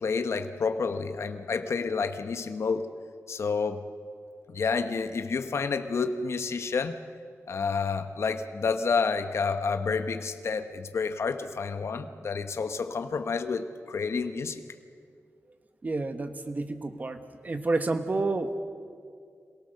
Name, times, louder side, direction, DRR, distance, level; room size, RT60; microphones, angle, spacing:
voice 1, 0.0-2.9 3.3-3.8 4.5-7.0 7.5-14.6, left 5 dB, 65° left, 8 dB, 1.1 m, -29 dB
voice 2, 15.8-17.2 17.4-18.6, right 3 dB, 35° right, 8 dB, 1.4 m, -29 dB
27.0 x 18.0 x 6.6 m, 2.2 s
wide cardioid pair, 120°, 5 cm